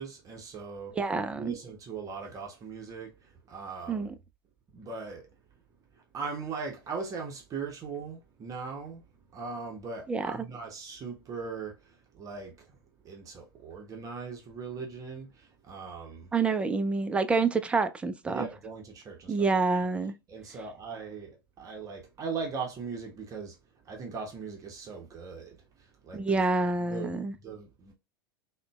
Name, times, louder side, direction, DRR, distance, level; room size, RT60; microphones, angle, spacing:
voice 1, 0.0-1.0 1.3-4.1 4.7-5.3 5.9-9.0 9.3-12.8 13.0-16.3 18.3-19.4 20.3-23.6 23.8-26.4 26.8-27.9, right 5 dB, 25° right, 0.7 m, -39 dB
voice 2, 0.9-1.5 3.9-4.2 10.1-10.5 16.3-18.5 19.3-20.1 26.1-27.4, right 4 dB, 10° right, 0.3 m, -27 dB
3.7 x 2.1 x 2.3 m
figure-of-eight pair, 85°, 12 cm